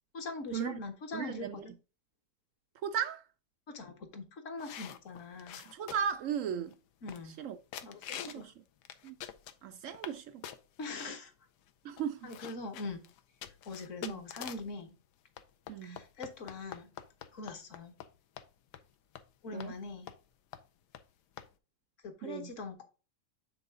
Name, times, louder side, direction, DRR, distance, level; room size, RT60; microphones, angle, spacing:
voice 1, 0.1-1.7 3.7-5.6 7.0-7.4 7.8-8.5 10.8-11.3 12.2-13.0 13.7-15.0 15.8-16.9 17.3-17.9 19.4-20.1 22.0-22.8, left 3 dB, 50° left, 1.5 m, -42 dB
voice 2, 1.1-1.6 2.8-3.2 5.6-6.8 7.4-7.6 8.2-8.5 9.0-9.2 9.6-10.4 11.8-12.3 14.0-14.2 15.7-16.0 19.5-19.7 22.2-22.5, right 8 dB, 75° right, 0.7 m, -36 dB
sound 1, 4.6-6.2 6.7-6.8 7.1-7.5 7.7-8.5 8.8-10.2 10.4-11.1 11.7-11.8 12.0-14.8 15.4-18.1 18.4-18.5 18.7-18.9 19.2-19.3 19.6-19.7 20.1-20.3 20.5-20.6 20.9-21.0 21.4-21.5, left 10 dB, 80° left, 1.3 m, -46 dB
8.2 x 4.0 x 3.7 m
omnidirectional pair, 1.8 m